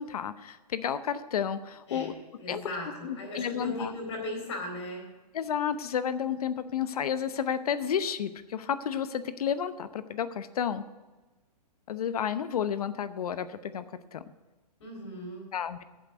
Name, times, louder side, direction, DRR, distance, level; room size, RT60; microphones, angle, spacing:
voice 1, 0.0-2.1 2.5-2.6 3.0-3.9 5.3-10.8 11.9-13.8 14.1-14.2 15.5-15.8, left 8 dB, 60° left, 12 dB, 0.8 m, -31 dB
voice 2, 1.9-5.0 14.8-15.5, left 1 dB, 45° left, 1 dB, 4.3 m, -38 dB
9.1 x 7.4 x 8.3 m, 1.2 s
hypercardioid pair, 170°, 21 cm